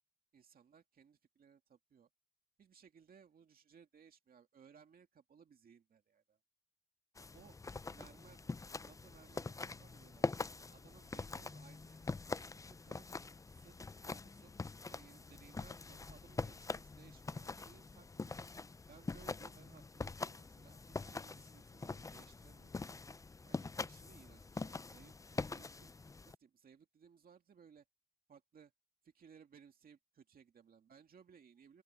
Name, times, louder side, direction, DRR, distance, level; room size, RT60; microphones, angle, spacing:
voice 1, 0.3-2.1 2.6-6.4 7.3-7.6 7.9-12.1 12.7-14.5 14.9-18.4 18.9-23.0 23.4-27.9 28.3-28.7 29.0-31.8, right 7 dB, 45° right, 2.3 m, -63 dB
sound 1, 7.2-26.4, left 3 dB, 15° left, 0.5 m, -44 dB
sound 2, 15.2-18.5, left 6 dB, 40° left, 3.1 m, -66 dB
open air
cardioid pair, 90°, 20 cm